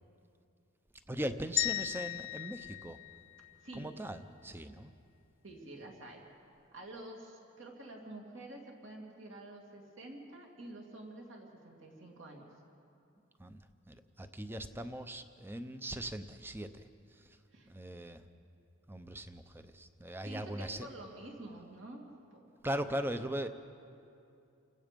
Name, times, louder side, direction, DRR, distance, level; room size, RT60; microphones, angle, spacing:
voice 1, 1.1-3.0 3.7-4.9 13.4-13.6 13.9-17.4 17.7-18.2 18.9-20.9 22.6-23.5, right 1 dB, 10° right, 9 dB, 0.7 m, -40 dB
sound 1, 1.6-3.8, left 16 dB, 60° left, 0.4 m, -36 dB
voice 2, 5.4-6.2 6.7-12.5 17.5-17.7 20.2-22.1 22.3-22.5, right 1 dB, 60° right, 0 dB, 2.7 m, -48 dB
29.0 x 17.0 x 5.3 m, 2.6 s
head